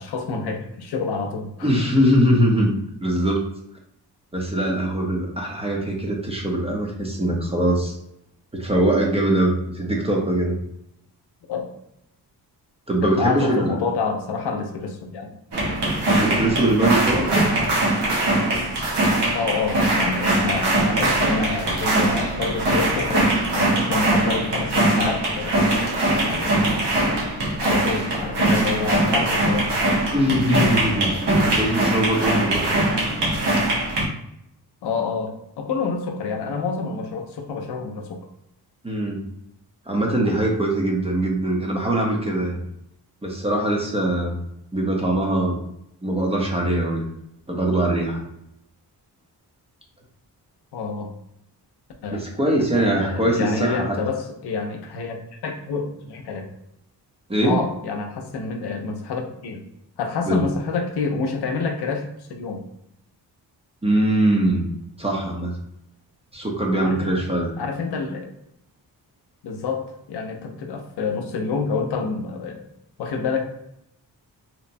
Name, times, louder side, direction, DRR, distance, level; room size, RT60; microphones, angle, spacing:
voice 1, 0.0-1.7 11.5-11.7 13.0-15.3 19.3-25.7 26.2-26.8 27.6-30.1 34.8-38.2 50.7-51.1 52.0-52.2 52.7-56.5 57.4-59.6 60.0-62.6 66.8-67.2 67.6-68.3 69.4-72.6 73.0-73.4, left 4 dB, 75° left, 3 dB, 0.6 m, -28 dB
voice 2, 1.6-2.7 3.0-3.4 4.3-8.0 8.5-10.6 12.9-13.8 16.2-17.5 30.1-32.7 38.8-39.2 39.9-42.6 43.2-44.4 44.7-45.6 46.0-47.1 47.5-48.2 52.1-54.0 57.3-57.6 60.3-60.4 63.8-64.7 65.0-65.6 66.3-67.6, right 1 dB, 15° right, 0 dB, 0.6 m, -22 dB
sound 1, 15.5-34.1, right 1 dB, 80° right, 1.0 m, -21 dB
2.9 x 2.1 x 2.6 m, 0.77 s
cardioid pair, 100°, 41 cm